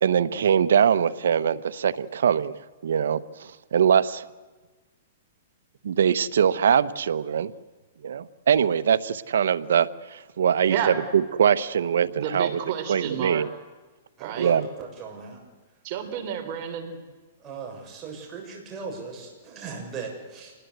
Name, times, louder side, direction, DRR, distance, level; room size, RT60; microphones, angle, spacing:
voice 1, 0.0-2.6 2.8-4.3 5.8-7.5 8.0-12.6 12.9-13.5 14.4-14.7, right 8 dB, 80° right, 14 dB, 1.0 m, -22 dB
voice 2, 10.7-11.0 12.2-13.4 14.2-14.5 15.8-17.0, right 9 dB, 40° right, 6 dB, 3.5 m, -30 dB
voice 3, 14.2-15.4 17.4-20.5, right 5 dB, 20° right, 0 dB, 6.8 m, -38 dB
26.5 x 20.0 x 8.0 m, 1.3 s
hypercardioid pair, 150°, 0 cm